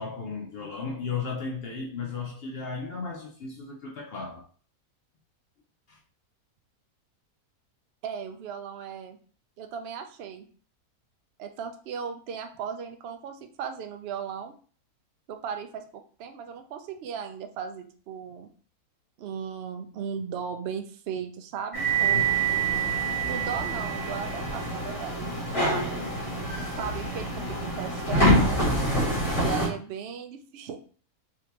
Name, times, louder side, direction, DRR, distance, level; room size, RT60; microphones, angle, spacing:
voice 1, 0.0-4.5 5.9-6.0 22.1-22.4 28.4-28.6, left 5 dB, 60° left, 0.6 m, -35 dB
voice 2, 8.0-9.2 9.6-10.5 11.4-14.5 15.3-18.5 19.2-25.9 26.6-28.6 29.4-30.8, right 7 dB, 75° right, 0.5 m, -37 dB
sound 1, 21.7-29.7, right 2 dB, 25° left, 1.0 m, -26 dB
3.5 x 2.8 x 2.9 m
omnidirectional pair, 1.6 m